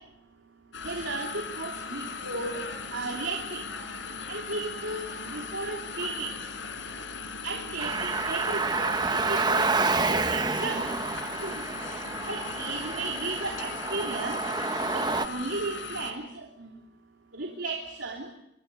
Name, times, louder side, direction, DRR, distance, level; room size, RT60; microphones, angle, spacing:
sound 1, 0.7-16.1, left 4 dB, 75° left, 4.2 m, -38 dB
voice 1, 0.8-2.6 2.9-3.6 4.3-6.3 7.4-9.7 10.0-10.8 11.4-11.7 12.3-14.4 14.9-16.7 17.3-18.3, right 3 dB, 75° right, 1 dB, 3.2 m, -35 dB
Car, 7.8-15.3, right 3 dB, 20° right, 0.8 m, -29 dB
25.0 x 24.5 x 6.9 m, 0.85 s
head